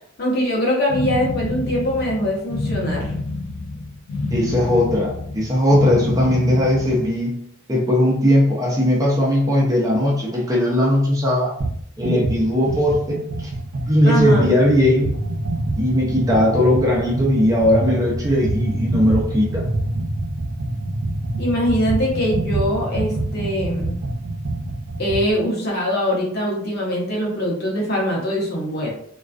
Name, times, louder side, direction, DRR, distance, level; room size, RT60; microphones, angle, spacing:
voice 1, 0.2-3.1 14.0-14.5 21.4-23.9 25.0-28.9, equal, 50° left, -3 dB, 0.8 m, -22 dB
sound 1, 0.9-7.2, left 3 dB, 80° left, 0.3 m, -28 dB
voice 2, 4.3-7.4 7.7-11.5 12.0-13.5 13.9-15.2 15.8-19.7, left 1 dB, 15° right, -3 dB, 0.5 m, -18 dB
sound 2, 11.6-11.8 12.0-25.3, right 2 dB, 85° right, 0.5 m, -26 dB
2.3 x 2.2 x 2.4 m, 0.68 s
head